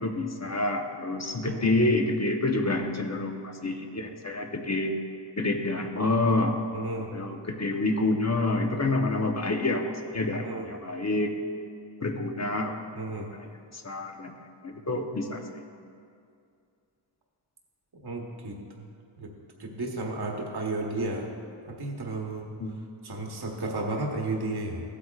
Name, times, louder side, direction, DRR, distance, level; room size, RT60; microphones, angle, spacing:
voice 1, 0.0-5.0 5.4-6.6 7.0-11.3 12.0-12.8 13.3-14.3 14.6-15.6 22.6-22.7, left 2 dB, 35° left, 3 dB, 0.8 m, -28 dB
voice 2, 6.7-7.1 10.4-10.7 12.9-13.3 17.9-18.8 19.2-19.3 19.6-21.3 21.6-22.5 23.0-24.8, right 2 dB, 55° right, 0 dB, 1.2 m, -33 dB
15.5 x 8.5 x 2.4 m, 2.4 s
wide cardioid pair, 95°, 46 cm